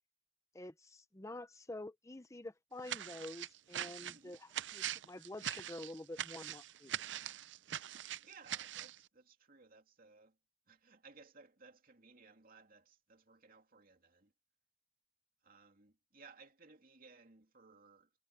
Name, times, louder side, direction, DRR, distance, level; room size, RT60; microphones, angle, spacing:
voice 1, 0.5-7.0, left 1 dB, 15° left, 0.7 m, -48 dB
sound 1, 2.8-9.0, right 11 dB, 75° right, 0.6 m, -42 dB
voice 2, 4.0-4.4 8.2-10.4 10.7-14.3 15.4-18.1, right 4 dB, 50° right, 2.7 m, -61 dB
head